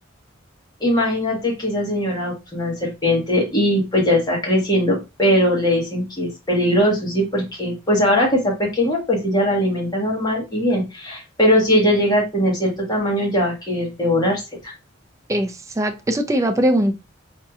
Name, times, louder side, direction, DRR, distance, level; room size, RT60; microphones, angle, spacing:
voice 1, 0.8-14.7, equal, 20° left, -3 dB, 1.4 m, -20 dB
voice 2, 15.3-16.9, right 1 dB, 15° right, 5 dB, 0.4 m, -20 dB
4.3 x 2.8 x 2.4 m, 0.26 s
head